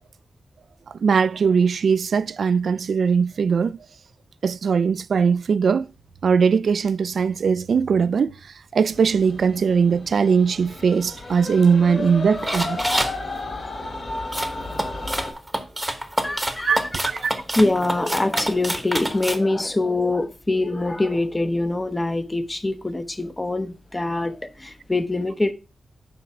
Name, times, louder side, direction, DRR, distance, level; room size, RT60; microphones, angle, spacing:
voice 1, 1.0-3.8 4.4-5.9 6.2-8.3 8.7-12.8 16.6-17.4, right 6 dB, 65° right, 0.4 m, -20 dB
sound 1, 8.9-15.3, left 2 dB, 50° left, 2.7 m, -32 dB
sound 2, 12.4-13.2 14.3-19.4, right 1 dB, 10° right, 1.0 m, -27 dB
voice 2, 16.2-16.9 17.3-25.5, left 2 dB, 20° left, 0.8 m, -24 dB
7.1 x 4.6 x 5.9 m
wide cardioid pair, 120°, 0 cm